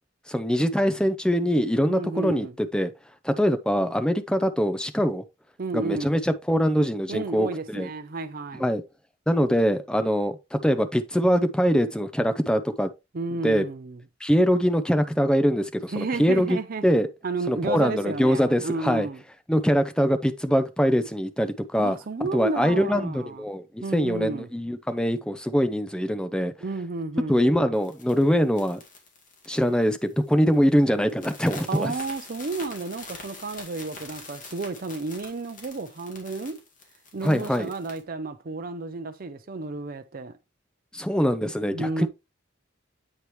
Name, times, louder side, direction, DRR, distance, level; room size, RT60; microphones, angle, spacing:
voice 1, 0.3-2.9 3.2-5.2 5.7-7.9 8.6-8.8 9.3-12.9 13.4-13.6 14.2-17.1 17.5-19.1 19.5-22.0 22.3-26.5 27.3-28.8 29.5-31.9 37.2-37.7 40.9-42.1, equal, 5° left, 0.6 m, -23 dB
voice 2, 1.8-2.5 5.6-6.2 7.1-8.7 13.1-14.0 15.9-16.8 17.2-19.2 21.8-23.4 23.8-24.5 26.6-27.5 31.7-36.6 37.1-40.3 41.7-42.1, right 3 dB, 50° right, 0.5 m, -32 dB
sound 1, 27.7-30.3 30.5-30.8 31.1-38.0, left 3 dB, 45° left, 2.1 m, -44 dB
8.4 x 4.7 x 3.1 m
head